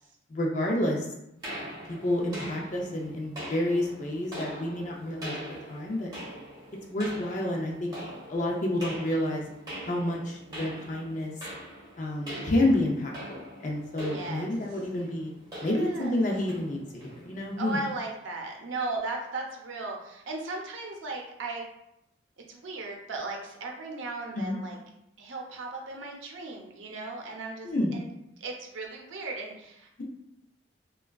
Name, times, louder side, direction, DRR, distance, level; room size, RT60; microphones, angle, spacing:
voice 1, 0.3-1.1 1.9-5.3 5.7-6.1 6.9-7.9 8.3-9.4 9.8-11.3 12.0-15.3 15.6-17.8 24.3-24.6 27.6-28.0, left 1 dB, 40° left, 0 dB, 0.4 m, -29 dB
sound 1, 1.4-17.8, right 1 dB, 20° right, 1.0 m, -43 dB
voice 2, 10.5-10.8 12.1-12.5 14.1-14.5 15.5-16.2 17.6-21.7 22.5-24.8 25.2-28.1 28.4-30.0, right 3 dB, 85° right, 0 dB, 0.6 m, -37 dB
3.3 x 2.2 x 2.2 m, 0.83 s
head